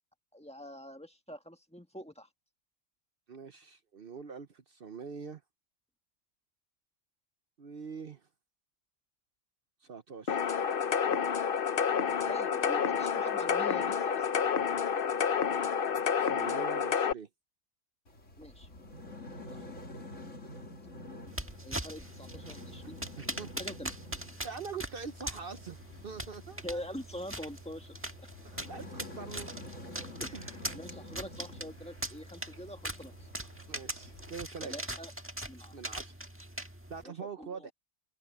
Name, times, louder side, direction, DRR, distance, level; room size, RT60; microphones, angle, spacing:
voice 1, 0.3-2.3 12.2-14.4 18.4-18.7 19.4-19.6 21.6-23.0 23.6-23.9 26.6-28.0 30.2-33.3 34.6-35.1 35.5-35.7 37.0-37.7, equal, 5° left, 1.6 m, -45 dB
voice 2, 3.3-5.4 7.6-8.3 9.8-10.5 15.8-17.3 22.8-22.9 23.2-23.5 24.4-25.8 26.0-26.8 28.4-29.5 30.3-30.5 33.7-34.7 35.7-36.2 36.9-37.7, right 5 dB, 50° right, 1.0 m, -43 dB
sound 1, 10.3-17.1, left 7 dB, 50° left, 0.9 m, -29 dB
sound 2, 18.1-34.4, left 1 dB, 70° left, 3.9 m, -49 dB
sound 3, 21.3-37.0, right 1 dB, 10° right, 1.4 m, -42 dB
omnidirectional pair, 1.3 m